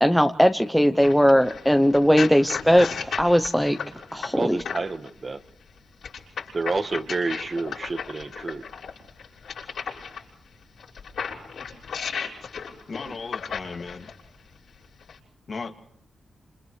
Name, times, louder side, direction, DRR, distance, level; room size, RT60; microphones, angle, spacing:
voice 1, 0.0-2.9 3.2-3.8 4.1-4.6, equal, ahead, 7 dB, 0.8 m, -19 dB
sound 1, 1.0-5.1 6.0-10.2 10.8-14.2 15.0-15.2, left 6 dB, 75° left, 6.6 m, -34 dB
voice 2, 4.3-5.4 6.5-8.6, right 3 dB, 35° right, 9 dB, 1.4 m, -29 dB
voice 3, 12.9-14.1 15.5-15.8, left 4 dB, 50° left, 4 dB, 2.4 m, -36 dB
29.0 x 28.0 x 3.3 m, 0.70 s
cardioid pair, 95°, 0 cm